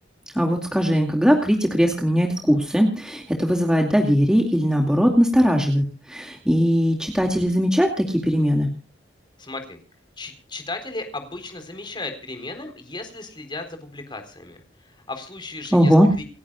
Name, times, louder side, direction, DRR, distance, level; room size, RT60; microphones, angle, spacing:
voice 1, 0.3-8.7 15.7-16.1, equal, 5° right, 2 dB, 2.3 m, -19 dB
voice 2, 9.4-9.8 10.2-14.6 15.1-15.9, left 2 dB, 25° left, 6 dB, 4.1 m, -35 dB
29.0 x 11.0 x 2.4 m, 0.31 s
head